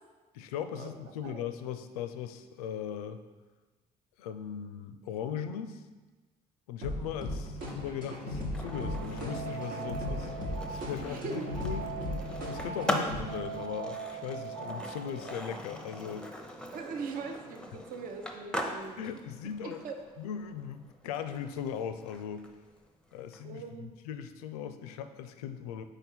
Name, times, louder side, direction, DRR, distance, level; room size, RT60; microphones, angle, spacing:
voice 1, 0.3-3.2 4.2-5.8 6.7-10.3 10.7-11.9 12.5-16.3 19.0-19.8 20.2-22.5 23.1-25.8, left 8 dB, 70° left, 10 dB, 0.4 m, -39 dB
sound 1, 6.8-13.2, left 1 dB, 65° right, 1.2 m, -37 dB
Skateboard, 7.5-23.4, left 1 dB, 5° left, 0.7 m, -41 dB
sound 2, 8.7-15.3, right 6 dB, 80° right, 1.6 m, -41 dB
voice 2, 11.0-11.5 12.8-13.1 16.7-19.1 19.8-20.0 23.4-24.0, right 5 dB, 45° right, 5 dB, 0.6 m, -41 dB
4.9 x 4.4 x 4.3 m, 1.3 s
figure-of-eight pair, 50°, 20 cm